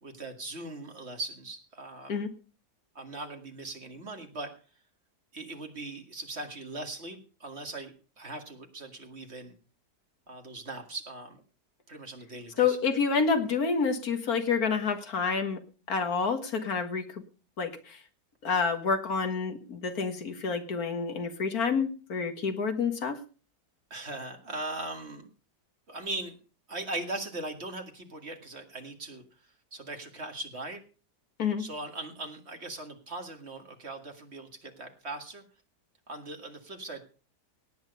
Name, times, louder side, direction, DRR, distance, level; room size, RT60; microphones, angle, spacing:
voice 1, 0.0-2.1 3.0-4.5 5.3-9.5 10.3-11.4 11.9-12.8 23.9-25.3 25.9-26.4 26.7-29.2 29.7-30.8 31.6-35.4 36.1-37.0, right 2 dB, 40° right, 5 dB, 2.2 m, -39 dB
voice 2, 12.6-15.6 15.9-17.2 17.6-18.0 18.4-23.2 31.4-31.6, left 5 dB, 65° left, 7 dB, 2.1 m, -28 dB
17.5 x 9.1 x 5.4 m, 0.38 s
omnidirectional pair, 1.7 m